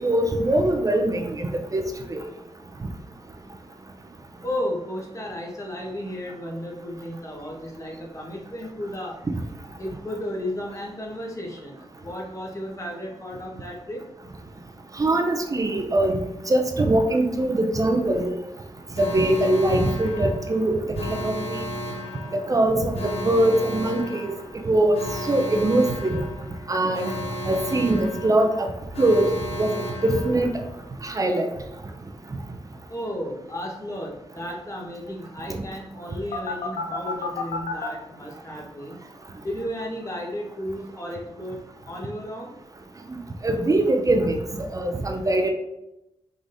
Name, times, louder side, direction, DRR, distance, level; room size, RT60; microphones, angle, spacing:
voice 1, 0.0-2.2 15.0-16.2 16.5-18.4 19.0-21.6 22.3-24.3 24.6-25.0 25.3-26.2 26.7-27.1 27.4-28.7 29.0-29.3 29.6-29.7 30.0-30.5 31.0-31.5 43.4-44.4 44.7-45.5, right 1 dB, 35° right, 4 dB, 0.5 m, -22 dB
voice 2, 4.4-9.2 9.8-14.0 32.9-39.0 39.4-41.6 41.9-42.5, equal, 30° left, -1 dB, 1.3 m, -33 dB
Alarm, 18.9-30.9 36.3-37.9, left 1 dB, 85° left, 0.5 m, -33 dB
4.7 x 3.9 x 2.6 m, 0.90 s
cardioid pair, 65°, 10 cm